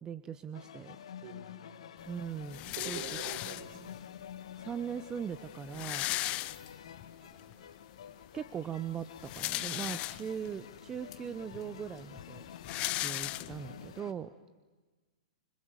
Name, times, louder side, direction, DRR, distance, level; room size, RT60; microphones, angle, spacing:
voice 1, 0.0-1.0 2.1-3.0 3.4-3.9 4.6-6.1 8.3-12.4 13.0-14.3, right 8 dB, 20° right, 13 dB, 0.8 m, -40 dB
sound 1, 0.5-14.1, left 9 dB, 70° left, 1.8 m, -49 dB
voice 2, 1.2-1.5 2.7-4.0 7.2-7.7, right 6 dB, 50° right, 5 dB, 5.1 m, -46 dB
sound 2, 2.5-4.0 4.8-4.9 5.1-5.2 5.5-7.1 7.5-7.6 9.0-10.5 11.1-11.2 11.5-13.9, left 18 dB, 35° left, 0.7 m, -37 dB
26.0 x 25.0 x 8.2 m, 1.3 s
hypercardioid pair, 115°, 3 cm